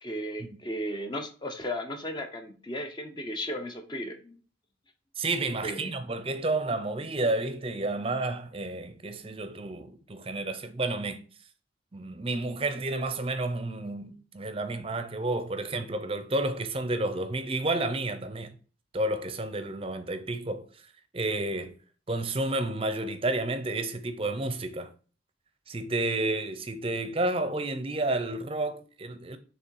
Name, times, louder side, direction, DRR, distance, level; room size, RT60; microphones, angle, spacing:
voice 1, 0.0-4.4 5.6-5.9, equal, 25° left, 0.7 m, -35 dB
voice 2, 5.2-11.2 11.9-18.5 18.9-20.7 21.1-21.7 22.1-24.9 25.7-29.4, right 2 dB, 30° right, 0.6 m, -31 dB
6.0 x 3.5 x 4.6 m
head